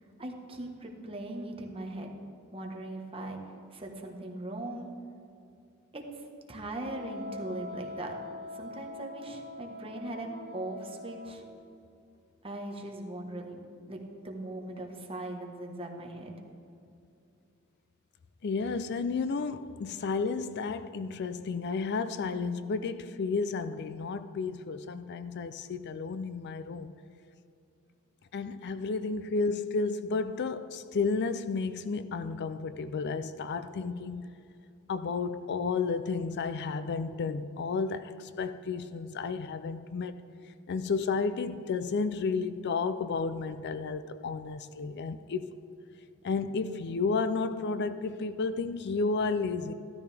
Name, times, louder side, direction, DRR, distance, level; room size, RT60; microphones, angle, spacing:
voice 1, 0.0-2.2 2.5-3.4 3.7-4.9 5.9-8.1 8.5-11.4 12.4-13.6 13.9-16.4, right 1 dB, 25° right, 1.3 m, -40 dB
Wind instrument woodwind instrument, 6.8-11.5, left 2 dB, 60° right, 1.1 m, -43 dB
voice 2, 18.4-26.9 28.3-34.3 34.9-40.2 40.7-45.6 46.2-49.7, left 4 dB, 55° left, 0.4 m, -32 dB
14.0 x 13.0 x 3.4 m
head